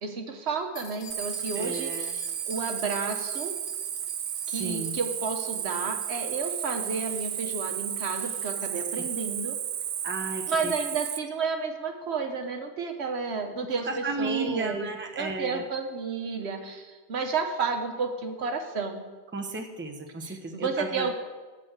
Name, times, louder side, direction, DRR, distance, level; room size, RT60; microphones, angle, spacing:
voice 1, 0.0-3.5 4.5-9.6 10.5-14.9 15.1-19.1 20.2-21.1, right 4 dB, 70° right, 5 dB, 1.2 m, -31 dB
sound 1, 0.8-8.5, left 4 dB, 50° left, 1.1 m, -49 dB
Cricket, 1.1-11.2, right 9 dB, 90° right, 1.0 m, -33 dB
voice 2, 1.5-2.1 4.4-4.9 8.9-9.0 10.0-10.7 13.8-15.7 19.3-21.1, right 3 dB, 10° right, 2 dB, 0.8 m, -34 dB
12.5 x 4.4 x 7.8 m, 1.3 s
omnidirectional pair, 1.1 m